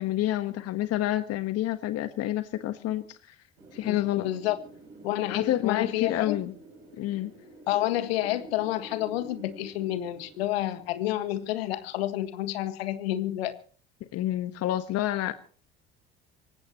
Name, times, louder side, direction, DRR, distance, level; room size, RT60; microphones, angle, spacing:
voice 1, 0.0-3.4 3.7-4.3 5.3-6.5 7.0-7.3 14.1-15.3, left 14 dB, 55° left, 10 dB, 1.3 m, -28 dB
Wind, 3.6-12.3, right 2 dB, 80° right, 7.6 m, -49 dB
voice 2, 3.8-4.6 5.0-6.4 7.7-13.5, left 14 dB, 75° left, 10 dB, 1.7 m, -29 dB
25.5 x 15.0 x 3.0 m, 0.41 s
hypercardioid pair, 60°, 31 cm